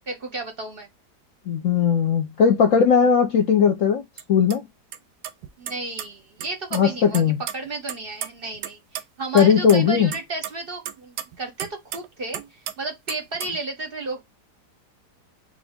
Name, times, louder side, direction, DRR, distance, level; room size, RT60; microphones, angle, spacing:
voice 1, 0.1-0.9 5.6-14.3, right 3 dB, 45° right, 0.8 m, -33 dB
voice 2, 1.5-4.0 4.3-4.7 6.7-7.4 9.3-10.1, left 7 dB, 60° left, 0.9 m, -18 dB
sound 1, 4.2-4.3 4.5-4.6 4.9-5.0 5.2-6.1 6.4-6.8 7.1-8.7 9.0-9.1 9.4-9.8 10.1-12.1 12.3-12.7 13.1-13.6, right 10 dB, 75° right, 1.1 m, -33 dB
4.1 x 2.5 x 3.4 m
omnidirectional pair, 1.8 m